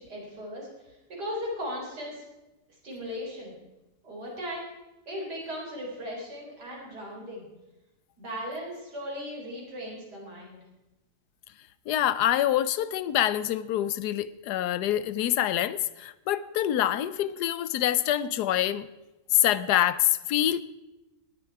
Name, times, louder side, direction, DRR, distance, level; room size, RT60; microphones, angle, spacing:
voice 1, 0.0-2.2 2.8-3.5 4.0-4.7 5.1-7.5 8.2-10.6, equal, 75° right, -3 dB, 4.6 m, -37 dB
voice 2, 11.9-18.9 19.3-20.6, left 12 dB, 75° left, 16 dB, 1.1 m, -26 dB
18.0 x 10.0 x 4.7 m, 1.0 s
omnidirectional pair, 1.8 m